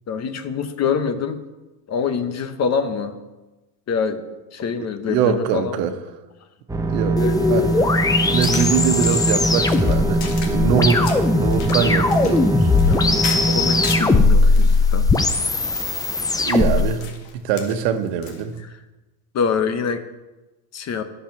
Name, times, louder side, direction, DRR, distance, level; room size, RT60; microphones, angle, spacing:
voice 1, 0.1-1.4 1.9-3.2 3.9-4.2 4.5-5.7 7.2-7.3 8.3-8.4 12.9-15.0 19.3-20.0 20.7-21.0, left 6 dB, 35° left, 10 dB, 0.9 m, -25 dB
voice 2, 4.8-6.0 6.9-7.2 7.5-12.7 14.4-14.6 16.4-17.1 17.3-18.6, right 7 dB, 85° right, 7 dB, 1.2 m, -23 dB
sound 1, 6.7-14.0, right 1 dB, 10° right, 0.8 m, -22 dB
sound 2, 7.2-16.9, left 3 dB, 10° left, 0.4 m, -19 dB
sound 3, 8.2-14.2 14.6-18.6, left 5 dB, 70° left, 2.0 m, -36 dB
10.5 x 7.5 x 5.9 m, 1.1 s
supercardioid pair, 120°, 47 cm